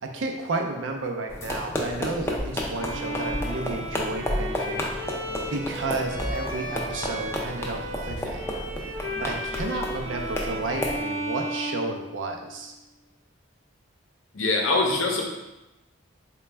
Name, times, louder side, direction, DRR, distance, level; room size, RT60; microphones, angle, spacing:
voice 1, 0.0-4.9 5.5-8.7 9.2-12.7, right 2 dB, 80° right, 3 dB, 0.5 m, -32 dB
sound 1, 1.3-11.0, left 1 dB, 15° left, 0.3 m, -33 dB
sound 2, 2.4-2.6 3.3-3.6 4.3-4.5 6.2-6.5 8.1-8.6, equal, 45° left, 0.8 m, -33 dB
Bowed string instrument, 2.8-12.6, equal, 35° right, 0.7 m, -34 dB
voice 2, 14.3-15.2, left 3 dB, 85° left, 1 dB, 0.6 m, -23 dB
3.9 x 2.2 x 3.3 m, 0.99 s
head